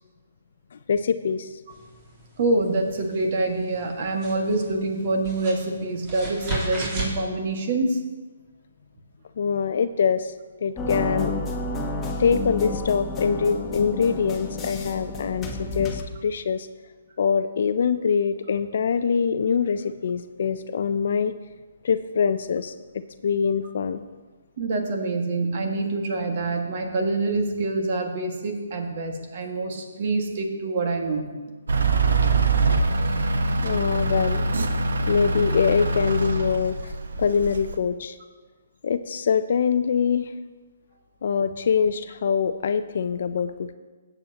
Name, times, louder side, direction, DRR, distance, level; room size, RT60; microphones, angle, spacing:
voice 1, 0.7-1.6 9.4-10.3 10.6-11.3 12.2-16.7 17.2-21.3 21.8-22.7 23.2-24.0 33.6-34.4 35.0-36.9 37.2-38.2 38.8-40.3 41.2-43.7, left 6 dB, 60° left, 11 dB, 0.4 m, -24 dB
sound 1, 1.7-7.2, right 1 dB, 30° right, 3.4 m, -35 dB
voice 2, 2.4-8.0 24.6-31.3 33.2-33.7, right 2 dB, 50° right, 3 dB, 1.8 m, -26 dB
sound 2, 10.8-16.0, left 2 dB, 15° left, 1.2 m, -30 dB
Truck / Idling, 31.7-37.8, right 3 dB, 75° right, 1.0 m, -23 dB
16.5 x 7.9 x 2.9 m, 1.3 s
hypercardioid pair, 150°, 0 cm